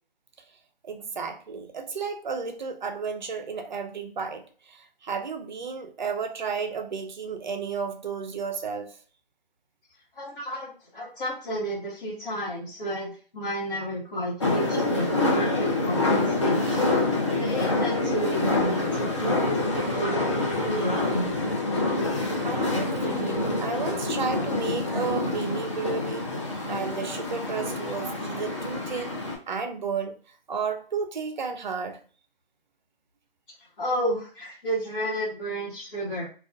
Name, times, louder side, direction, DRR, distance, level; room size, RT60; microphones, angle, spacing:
voice 1, 0.8-9.0 22.4-26.3 26.7-29.1 29.5-30.1 30.5-32.0, right 5 dB, 50° right, 0.5 m, -32 dB
voice 2, 10.1-15.1 15.3-16.8 17.4-19.4 19.8-21.3 33.8-36.3, equal, 55° left, 1.0 m, -32 dB
sound 1, 14.4-29.4, left 2 dB, 30° left, 0.4 m, -26 dB
sound 2, 22.4-23.7 24.3-25.2, left 3 dB, 5° right, 0.7 m, -37 dB
2.3 x 2.2 x 2.4 m
figure-of-eight pair, 155°, 30 cm